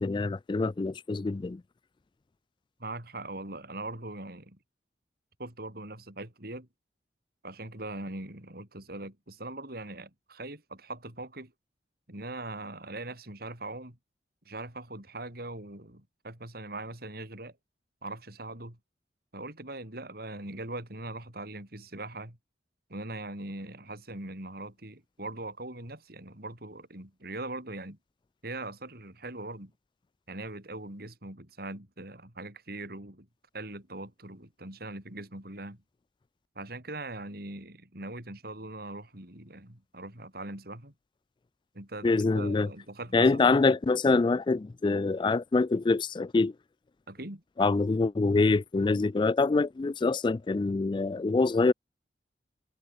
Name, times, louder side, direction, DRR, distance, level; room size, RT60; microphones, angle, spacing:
voice 1, 0.0-1.6 42.0-42.7 43.1-46.5 47.6-51.7, left 3 dB, 25° left, 0.3 m, -25 dB
voice 2, 2.8-4.6 5.4-6.7 7.4-11.5 12.1-14.0 14.4-17.6 18.0-18.8 19.3-22.4 22.9-28.0 28.4-29.7 30.3-33.3 33.5-35.8 36.5-40.9 41.7-43.7 47.1-47.4, right 2 dB, 60° right, 5.2 m, -41 dB
head